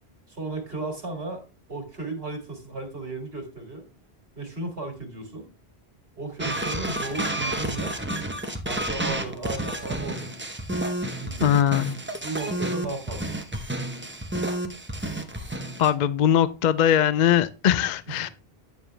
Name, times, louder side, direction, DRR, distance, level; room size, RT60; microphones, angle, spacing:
voice 1, 0.3-1.4 1.7-3.9 4.4-5.5 6.2-8.1 8.7-10.3 11.0-11.5 12.2-13.4 18.1-18.3, right 3 dB, 70° right, 2.1 m, -35 dB
sound 1, 6.4-15.9, right 1 dB, 10° right, 0.8 m, -30 dB
voice 2, 11.4-12.0 15.8-18.3, left 10 dB, 55° left, 0.6 m, -21 dB
9.2 x 7.1 x 3.3 m
omnidirectional pair, 1.1 m